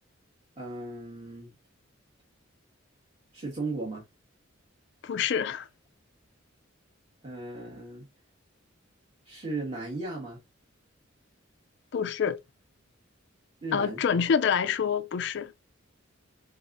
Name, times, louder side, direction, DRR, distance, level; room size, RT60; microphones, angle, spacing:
voice 1, 0.6-1.5 3.3-4.0 7.2-8.1 9.2-10.4 13.6-14.0, right 2 dB, 30° right, 1.4 m, -36 dB
voice 2, 5.0-5.7 11.9-12.4 13.7-15.5, left 7 dB, 55° left, 0.4 m, -26 dB
3.5 x 3.4 x 2.5 m
head